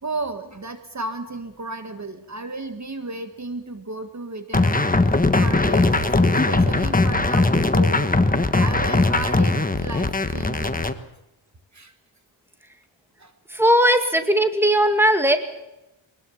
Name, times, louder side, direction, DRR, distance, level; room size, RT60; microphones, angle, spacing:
voice 1, 0.0-10.9 11.7-11.9 13.2-13.3, right 2 dB, 35° right, 8 dB, 1.7 m, -34 dB
sound 1, 4.5-10.9, left 2 dB, 15° left, 1.3 m, -19 dB
voice 2, 13.5-15.4, equal, 5° right, 7 dB, 2.1 m, -18 dB
22.5 x 20.0 x 7.3 m, 0.92 s
wide cardioid pair, 105°, 48 cm